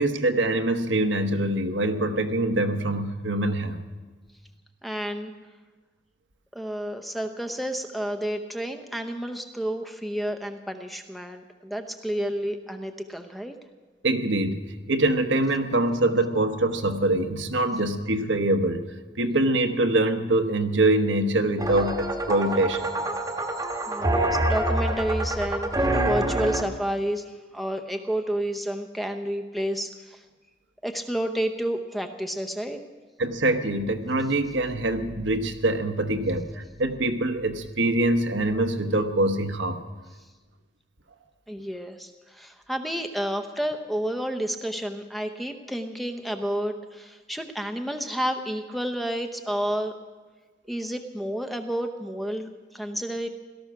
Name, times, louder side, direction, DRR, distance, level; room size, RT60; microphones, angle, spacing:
voice 1, 0.0-3.8 14.0-18.8 19.2-22.9 33.2-39.8, right 2 dB, 75° right, 6 dB, 1.2 m, -24 dB
voice 2, 4.8-5.3 6.5-13.5 23.9-30.2 30.8-32.8 41.5-49.9 50.7-53.3, equal, ahead, 6 dB, 0.7 m, -30 dB
sound 1, 21.6-26.6, right 1 dB, 20° right, 1.1 m, -26 dB
17.5 x 13.0 x 5.9 m, 1.3 s
head